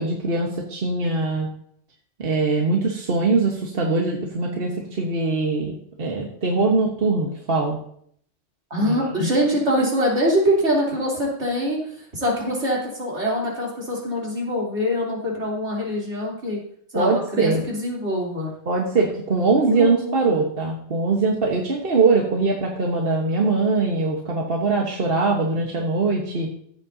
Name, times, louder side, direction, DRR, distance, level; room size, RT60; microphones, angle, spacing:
voice 1, 0.0-1.5 2.2-7.8 8.8-9.0 16.9-17.6 18.7-26.5, right 3 dB, 50° right, -1 dB, 1.4 m, -22 dB
voice 2, 8.7-11.8 12.1-16.6 16.9-18.5 19.7-20.4, equal, 70° right, -4 dB, 3.6 m, -24 dB
15.0 x 8.6 x 2.7 m, 0.64 s
omnidirectional pair, 1.2 m